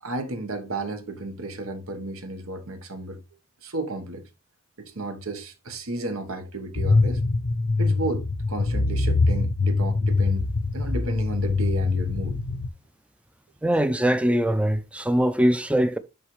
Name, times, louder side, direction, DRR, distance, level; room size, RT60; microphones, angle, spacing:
voice 1, 0.0-3.2 3.6-4.2 4.8-7.2 7.8-12.4, right 2 dB, 80° right, 1.2 m, -33 dB
sound 1, 6.7-12.7, left 3 dB, 55° left, 0.6 m, -23 dB
voice 2, 13.6-16.0, equal, 5° right, 0.4 m, -22 dB
10.5 x 3.9 x 3.1 m
head